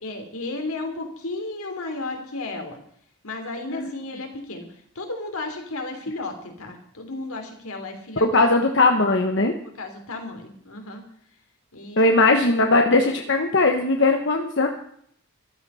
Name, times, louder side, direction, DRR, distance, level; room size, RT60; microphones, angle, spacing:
voice 1, 0.0-2.8 3.2-4.7 4.9-8.3 9.6-11.0 11.7-12.1, left 2 dB, 80° left, 4 dB, 3.1 m, -33 dB
voice 2, 8.3-9.5 12.0-14.7, left 2 dB, 55° left, 4 dB, 1.2 m, -19 dB
14.0 x 12.5 x 5.6 m, 0.65 s
head